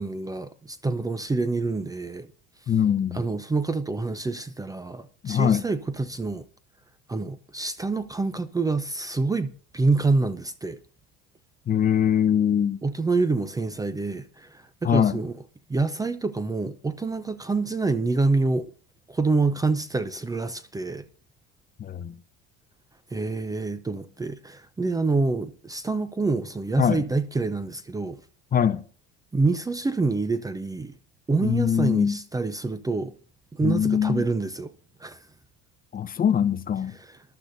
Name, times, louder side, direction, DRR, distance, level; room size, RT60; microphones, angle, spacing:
voice 1, 0.0-2.3 3.1-6.5 7.1-10.8 12.8-15.3 15.7-18.7 19.1-21.1 23.1-28.2 29.3-30.9 31.3-33.1 33.5-34.7 35.0-35.2, right 3 dB, 10° right, 0.6 m, -27 dB
voice 2, 2.7-3.3 5.2-5.6 11.7-12.8 14.8-15.2 21.8-22.1 26.8-27.1 28.5-28.8 31.4-32.2 33.6-34.2 35.9-36.9, left 8 dB, 30° left, 0.7 m, -22 dB
21.0 x 12.0 x 2.7 m
cardioid pair, 115°, 29 cm